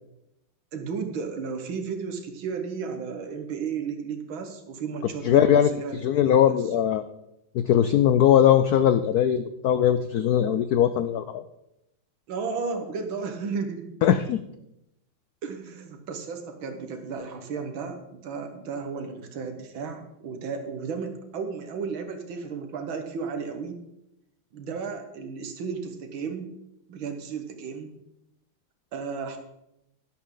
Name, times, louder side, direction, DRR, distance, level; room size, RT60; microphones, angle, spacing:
voice 1, 0.7-6.6 12.3-13.9 15.4-23.8 24.5-26.5 26.9-27.9 28.9-29.4, right 5 dB, 75° right, 6 dB, 2.1 m, -34 dB
voice 2, 5.2-5.7 6.0-7.0 7.5-11.4 14.0-14.4, left 10 dB, 90° left, 11 dB, 0.8 m, -20 dB
12.0 x 11.5 x 3.9 m, 0.85 s
omnidirectional pair, 2.2 m